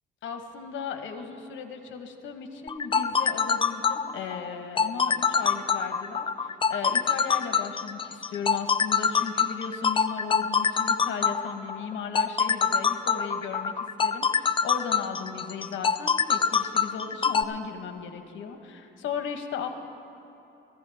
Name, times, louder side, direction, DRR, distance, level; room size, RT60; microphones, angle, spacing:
voice 1, 0.2-13.7 14.0-19.7, left 6 dB, 75° left, 7 dB, 1.1 m, -36 dB
sound 1, 2.7-17.4, left 6 dB, 25° left, 0.4 m, -25 dB
17.0 x 14.5 x 3.4 m, 2.8 s
cardioid pair, 90°, 20 cm